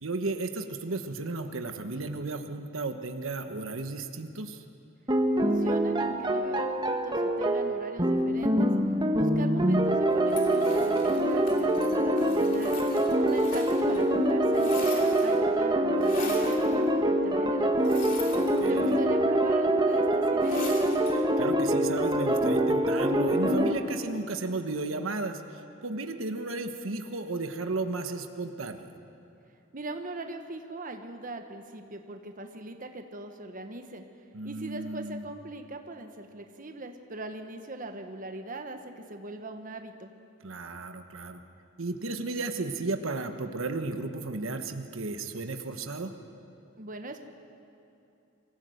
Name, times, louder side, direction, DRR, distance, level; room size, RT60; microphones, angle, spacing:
voice 1, 0.0-4.6 18.3-19.0 21.1-28.9 34.3-35.2 40.4-41.4 41.8-46.1, right 3 dB, 90° right, 7 dB, 1.2 m, -34 dB
sound 1, 5.1-23.7, right 1 dB, 20° right, 1.2 m, -25 dB
voice 2, 5.4-8.7 9.1-12.8 13.1-18.2 18.7-20.7 29.7-34.0 34.4-40.1 46.8-47.2, right 2 dB, 45° right, 6 dB, 1.2 m, -40 dB
sound 2, 10.3-14.0 14.3-15.5 16.0-16.7 17.8-19.0 20.4-21.2, left 3 dB, 45° left, 3.0 m, -41 dB
23.5 x 15.5 x 7.9 m, 2.8 s
head